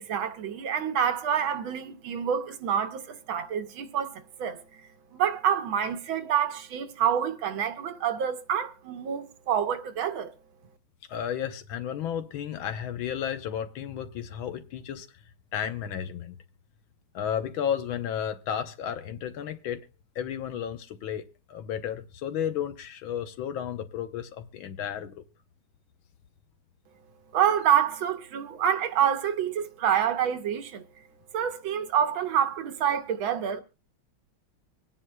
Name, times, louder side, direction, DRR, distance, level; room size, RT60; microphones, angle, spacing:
voice 1, 0.0-4.8 5.1-10.3 27.3-30.8 31.3-33.6, right 9 dB, 75° right, 1.7 m, -27 dB
voice 2, 11.1-15.1 15.5-16.4 17.1-19.9 20.1-25.2, left 9 dB, 75° left, 1.6 m, -33 dB
25.0 x 9.6 x 2.2 m
omnidirectional pair, 2.3 m